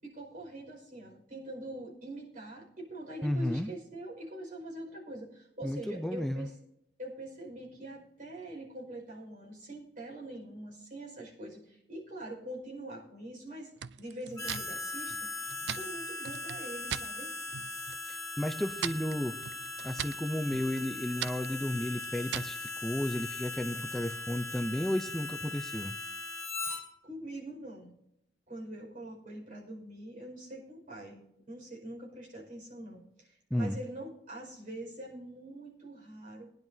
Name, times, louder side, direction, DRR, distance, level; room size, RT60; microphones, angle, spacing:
voice 1, 0.0-6.5 7.0-13.7 14.0-15.3 15.7-17.4 27.0-27.9 28.5-36.5, right 1 dB, 50° right, -2 dB, 5.1 m, -44 dB
voice 2, 3.2-3.7 5.6-6.5 18.1-19.4 19.8-26.0 33.5-33.8, left 1 dB, ahead, 6 dB, 0.5 m, -33 dB
sound 1, 13.8-17.1 17.5-18.1 18.4-22.6, right 9 dB, 80° right, 0.4 m, -41 dB
Harmonica, 14.4-26.8, left 3 dB, 20° left, 2.5 m, -39 dB
21.0 x 10.5 x 2.7 m, 0.80 s
head